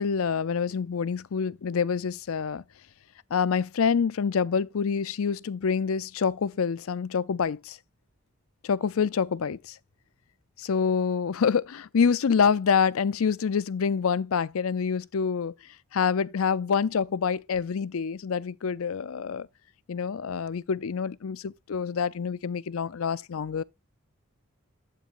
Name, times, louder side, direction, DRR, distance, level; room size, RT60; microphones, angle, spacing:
voice 1, 0.0-2.6 3.3-7.8 8.6-9.7 10.6-15.5 15.9-19.5 19.9-23.6, left 6 dB, 75° left, 0.5 m, -26 dB
12.5 x 8.7 x 2.5 m
head